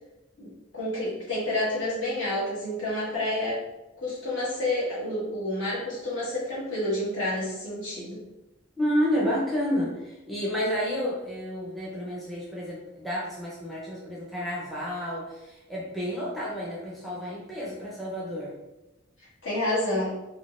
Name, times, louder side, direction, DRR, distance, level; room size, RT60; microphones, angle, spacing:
voice 1, 0.4-3.6 4.0-8.2 19.4-20.2, left 1 dB, 65° left, -8 dB, 1.2 m, -29 dB
voice 2, 8.8-18.5, equal, ahead, -6 dB, 0.5 m, -30 dB
3.7 x 2.1 x 2.4 m, 1.0 s
head